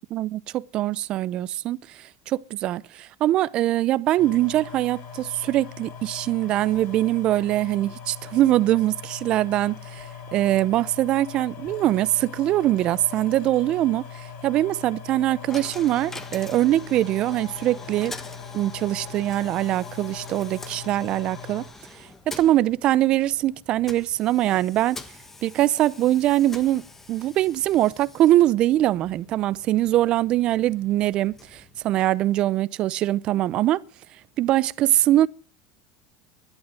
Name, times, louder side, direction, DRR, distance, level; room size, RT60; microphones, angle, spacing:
voice 1, 0.1-18.1 18.5-21.6 22.3-25.0 25.4-26.8 27.1-33.8 34.4-35.3, right 14 dB, 45° right, 0.7 m, -22 dB
sound 1, 4.2-21.7, left 7 dB, 55° left, 6.3 m, -40 dB
Coin (dropping), 15.5-32.4, left 3 dB, 15° left, 1.6 m, -45 dB
11.5 x 11.0 x 9.1 m
supercardioid pair, 120°, 2 cm